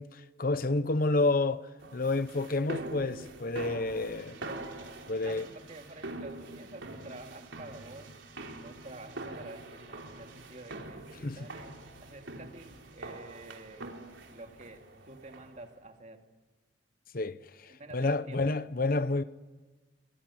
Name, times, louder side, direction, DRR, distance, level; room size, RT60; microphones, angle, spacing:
voice 1, 0.0-1.7 1.9-4.4 5.1-5.4 11.2-11.4 17.1-17.4 17.9-19.2, left 2 dB, 50° left, 0.9 m, -29 dB
sound 1, 1.8-15.7, right 2 dB, 85° right, 3.7 m, -44 dB
voice 2, 5.2-8.2 8.6-13.9 14.3-16.3 17.7-18.4, right 2 dB, 40° right, 2.6 m, -49 dB
25.5 x 23.5 x 9.9 m
head